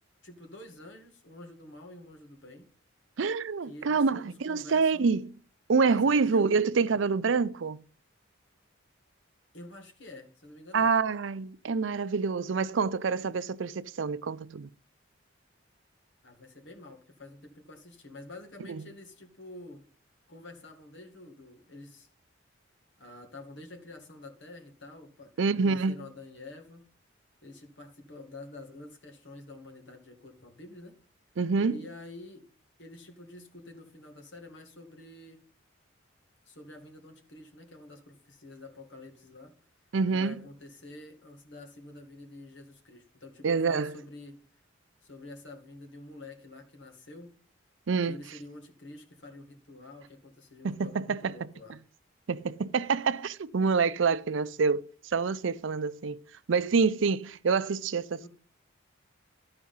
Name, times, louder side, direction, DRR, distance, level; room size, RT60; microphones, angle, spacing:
voice 1, 0.2-2.7 3.6-5.1 5.9-6.5 9.5-11.0 16.2-19.8 20.3-22.1 23.0-26.8 27.4-30.9 31.7-32.4 32.8-35.4 36.5-39.5 40.1-44.4 45.0-47.3 48.0-51.8 58.2-58.3, left 2 dB, 65° left, 2.0 m, -48 dB
voice 2, 3.2-5.3 5.7-7.8 10.7-14.7 18.7-18.8 25.4-26.1 31.4-31.8 39.9-40.4 43.4-43.9 47.9-48.2 50.6-51.8 52.3-56.2 56.5-58.3, right 5 dB, 70° right, 0.5 m, -27 dB
12.5 x 4.8 x 5.5 m
head